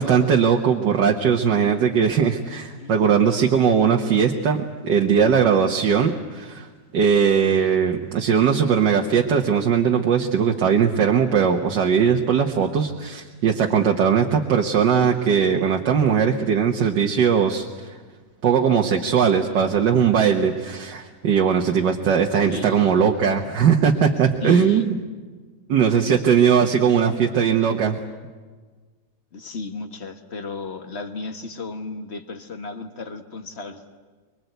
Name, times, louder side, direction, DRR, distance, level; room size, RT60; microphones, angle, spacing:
voice 1, 0.0-6.7 6.9-17.7 18.4-25.0 25.7-28.0, right 7 dB, 80° right, 2 dB, 1.8 m, -19 dB
voice 2, 22.5-22.9 24.4-24.9 29.3-33.8, left 3 dB, 40° left, 6 dB, 1.6 m, -33 dB
24.5 x 23.5 x 8.0 m, 1.4 s
omnidirectional pair, 1.9 m